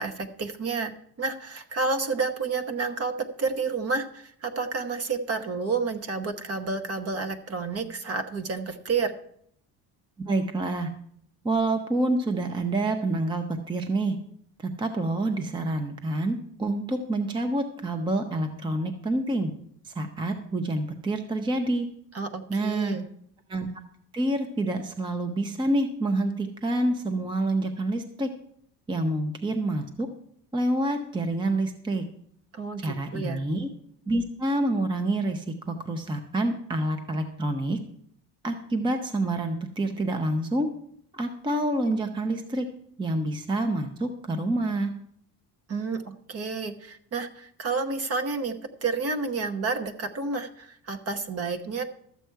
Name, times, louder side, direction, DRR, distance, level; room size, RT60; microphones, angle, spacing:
voice 1, 0.0-9.1 22.1-23.0 32.5-33.4 45.7-48.6 48.8-51.8, right 4 dB, 35° right, 8 dB, 1.0 m, -30 dB
voice 2, 10.2-10.9 11.4-14.2 14.6-19.5 19.8-21.9 22.5-23.0 23.5-23.7 24.1-28.3 28.9-30.1 30.5-32.0 32.8-33.7 34.1-37.8 38.4-40.7 41.1-42.7 43.0-44.9, right 2 dB, 10° right, 6 dB, 0.7 m, -27 dB
13.0 x 7.7 x 4.6 m, 0.65 s
cardioid pair, 155°, 40 cm